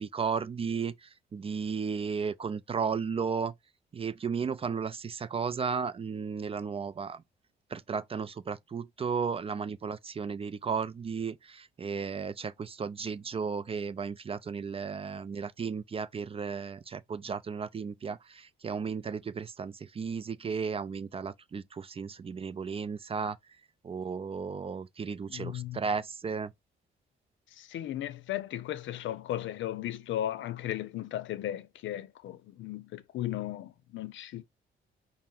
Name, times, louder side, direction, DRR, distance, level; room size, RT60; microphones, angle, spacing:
voice 1, 0.0-3.5 3.9-7.2 7.7-23.4 23.8-26.5, right 5 dB, 30° right, 0.4 m, -34 dB
voice 2, 25.3-25.8 27.5-34.4, left 12 dB, 75° left, 0.6 m, -36 dB
5.4 x 2.1 x 3.7 m
cardioid pair, 90°, 20 cm